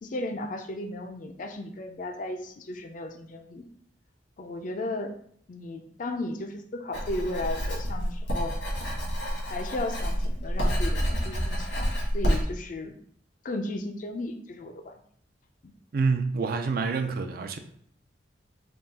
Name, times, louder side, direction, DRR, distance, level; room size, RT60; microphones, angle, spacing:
voice 1, 0.0-3.7 4.4-5.2 5.5-8.5 9.5-12.9 13.4-15.0 15.6-15.7, left 2 dB, 45° left, 0.4 m, -35 dB
Writing, 6.9-12.4, equal, 85° left, 1.4 m, -28 dB
voice 2, 15.9-17.6, right 4 dB, 50° right, 0.4 m, -27 dB
3.6 x 2.3 x 4.0 m
head